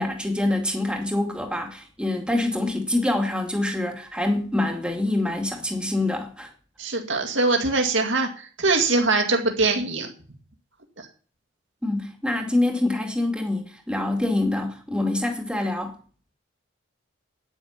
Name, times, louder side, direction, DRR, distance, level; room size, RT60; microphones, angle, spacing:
voice 1, 0.0-6.5 11.8-16.0, left 1 dB, 5° right, 2.3 m, -25 dB
voice 2, 6.8-10.1 11.0-11.1, right 3 dB, 70° right, 2.2 m, -22 dB
10.0 x 9.9 x 7.2 m
head